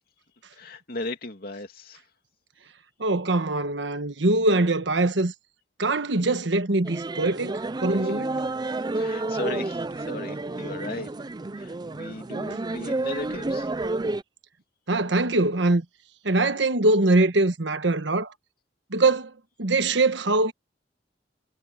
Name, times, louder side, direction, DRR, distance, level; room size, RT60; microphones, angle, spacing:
voice 1, 0.6-2.0 8.0-8.2 8.6-11.1 11.6-13.7, left 2 dB, 55° left, 2.7 m, -36 dB
voice 2, 3.0-5.3 5.8-8.3 14.9-15.8 16.2-18.3 18.9-19.3 19.6-20.5, right 2 dB, 75° right, 1.4 m, -22 dB
sound 1, 6.8-14.2, right 2 dB, 25° right, 0.5 m, -30 dB
head